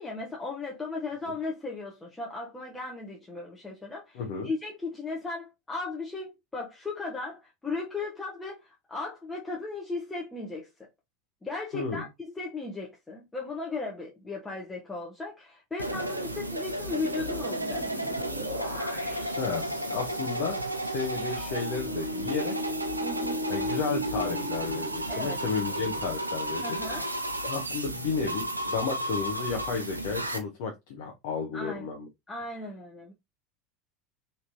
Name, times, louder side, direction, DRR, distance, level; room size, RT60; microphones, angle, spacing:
voice 1, 0.0-10.7 11.4-12.1 12.4-17.9 23.0-23.4 25.1-25.4 26.6-27.1 31.5-31.9 32.3-33.1, left 3 dB, 10° left, 0.8 m, -36 dB
voice 2, 4.1-4.5 11.7-12.1 19.4-20.6 20.8-22.5 23.5-26.8 27.4-32.1, left 5 dB, 55° left, 0.7 m, -32 dB
sound 1, 15.8-30.4, right 1 dB, 85° right, 0.4 m, -33 dB
sound 2, 15.9-26.0, equal, 90° left, 0.8 m, -37 dB
3.6 x 2.7 x 2.5 m
figure-of-eight pair, 75°, 0 cm